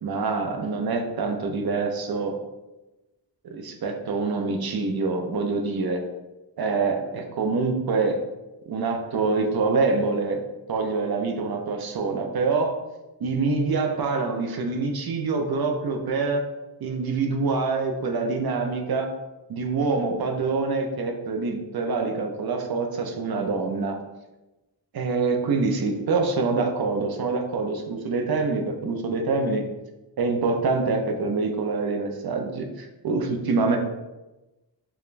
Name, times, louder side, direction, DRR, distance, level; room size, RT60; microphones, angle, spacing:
voice 1, 0.0-2.3 3.4-6.0 6.6-8.2 8.7-10.4 10.7-12.8 13.2-16.4 16.8-19.1 19.5-24.0 24.9-29.6 30.2-33.8, right 4 dB, 60° right, 3 dB, 0.5 m, -25 dB
4.7 x 2.2 x 2.5 m, 1.0 s
wide cardioid pair, 150°, 42 cm